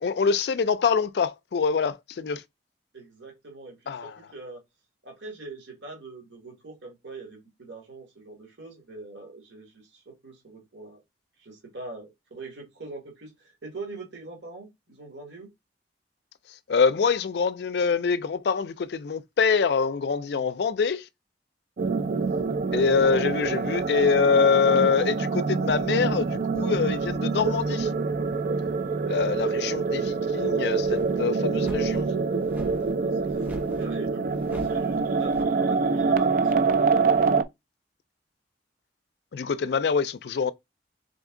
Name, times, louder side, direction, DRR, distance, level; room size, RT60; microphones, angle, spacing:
voice 1, 0.0-2.4 3.9-4.2 16.7-21.1 22.7-27.9 29.0-32.1 39.3-40.5, left 5 dB, 65° left, 0.4 m, -25 dB
voice 2, 2.9-4.6 5.0-11.0 11.4-15.5 22.6-22.9 29.4-29.7 33.0-33.3 33.6-37.1, right 3 dB, 85° right, 1.8 m, -42 dB
sound 1, 21.8-37.4, right 4 dB, 50° right, 0.4 m, -25 dB
sound 2, 26.2-26.4 27.2-27.8 28.3-28.4 30.6-35.4, equal, 10° right, 1.0 m, -44 dB
3.8 x 3.5 x 3.7 m
head